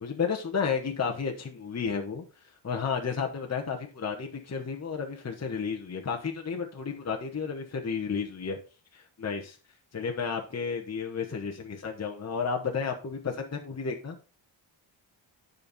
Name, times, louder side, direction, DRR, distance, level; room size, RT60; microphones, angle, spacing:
voice 1, 0.0-2.2 2.6-8.6 8.9-9.6 9.9-14.2, left 6 dB, 35° left, 1 dB, 1.1 m, -32 dB
9.9 x 5.3 x 4.1 m, 0.35 s
wide cardioid pair, 150°, 46 cm